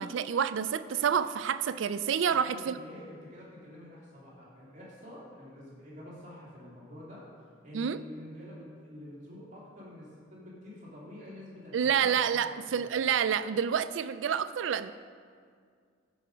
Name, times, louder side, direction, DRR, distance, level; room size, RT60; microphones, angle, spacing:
voice 1, 0.0-2.8 7.7-8.0 11.7-14.9, right 7 dB, 70° right, 13 dB, 0.3 m, -28 dB
voice 2, 2.3-12.6, left 1 dB, 40° right, -7 dB, 2.4 m, -48 dB
12.0 x 5.0 x 5.0 m, 2.1 s
head